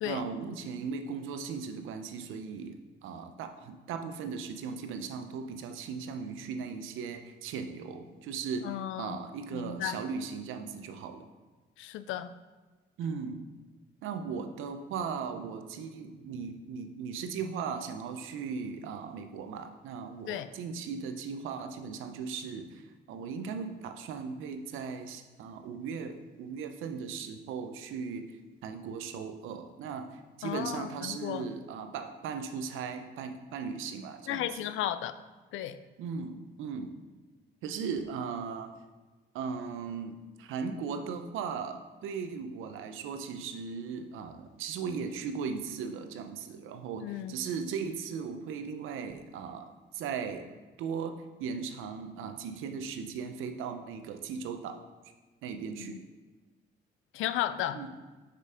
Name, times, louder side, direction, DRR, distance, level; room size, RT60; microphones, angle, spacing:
voice 1, 0.0-2.8 3.0-11.3 13.0-13.4 14.0-34.7 36.0-37.0 37.6-38.7 39.3-50.5 50.8-54.8 55.4-56.0 57.7-57.9, right 6 dB, 90° right, 7 dB, 0.7 m, -38 dB
voice 2, 8.6-9.2 9.5-10.0 11.8-12.3 20.3-20.5 30.4-31.5 34.3-35.1 35.5-35.8 47.0-47.3 55.7-56.0 57.1-57.8, left 12 dB, 85° left, 13 dB, 0.4 m, -34 dB
6.6 x 5.3 x 4.9 m, 1.2 s
cardioid pair, 90°, 20 cm